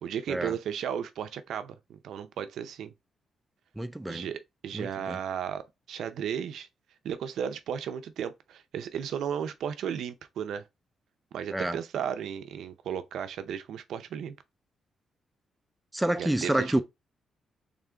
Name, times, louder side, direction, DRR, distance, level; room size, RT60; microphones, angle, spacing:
voice 1, 0.0-2.9 4.1-6.7 7.0-10.6 11.3-14.4 16.2-16.8, right 8 dB, 80° right, 0.5 m, -34 dB
voice 2, 3.8-4.3 4.7-5.2 11.5-11.8 15.9-16.8, right 1 dB, 5° right, 0.4 m, -28 dB
3.7 x 3.6 x 3.3 m
cardioid pair, 150°, 0 cm